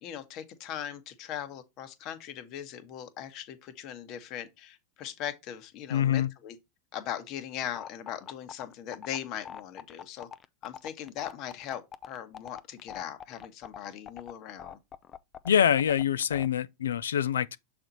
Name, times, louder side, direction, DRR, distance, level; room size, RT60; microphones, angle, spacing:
voice 1, 0.0-6.6 6.9-10.3 10.6-14.8, left 10 dB, 45° left, 1.3 m, -39 dB
voice 2, 5.9-6.3 15.4-17.6, left 9 dB, 90° left, 0.4 m, -25 dB
sound 1, 7.7-16.5, left 8 dB, 30° left, 0.5 m, -43 dB
6.4 x 4.5 x 4.0 m
hypercardioid pair, 115°, 0 cm